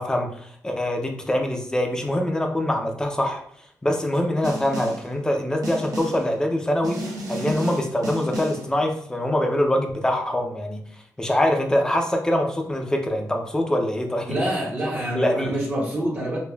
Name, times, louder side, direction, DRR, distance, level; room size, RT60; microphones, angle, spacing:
voice 1, 0.0-3.4 3.8-14.4 15.1-15.6, left 1 dB, 10° left, 3 dB, 0.5 m, -24 dB
Snare drum, 4.4-5.1 5.6-6.3 6.8-8.7, right 1 dB, 65° right, 0.7 m, -32 dB
voice 2, 14.3-16.4, right 1 dB, 30° right, -4 dB, 0.8 m, -26 dB
5.0 x 2.3 x 2.2 m, 0.65 s
wide cardioid pair, 170°, 6 cm